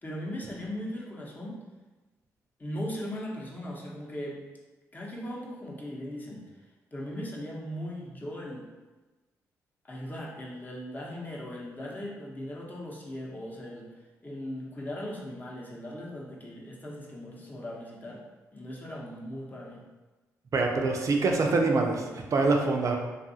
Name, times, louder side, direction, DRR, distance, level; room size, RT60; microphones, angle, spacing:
voice 1, 0.0-1.6 2.6-4.4 4.9-8.7 9.8-18.2 18.5-19.8, equal, 25° left, -3 dB, 0.8 m, -38 dB
voice 2, 20.5-23.0, right 3 dB, 50° right, 2 dB, 0.5 m, -25 dB
2.6 x 2.4 x 2.7 m, 1.2 s
hypercardioid pair, 50°, 7 cm